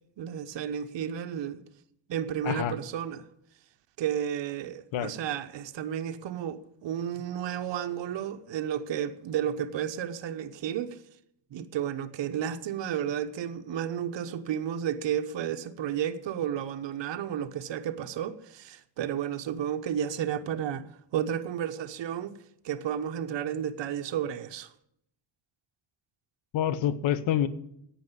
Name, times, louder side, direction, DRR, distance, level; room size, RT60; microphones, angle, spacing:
voice 1, 0.2-1.6 2.1-3.3 4.0-11.0 11.5-20.8 21.1-22.4 22.6-24.7, right 9 dB, 70° right, 1.1 m, -32 dB
voice 2, 26.5-27.5, left 10 dB, 85° left, 1.2 m, -27 dB
10.5 x 9.0 x 9.7 m
cardioid pair, 90°, 45 cm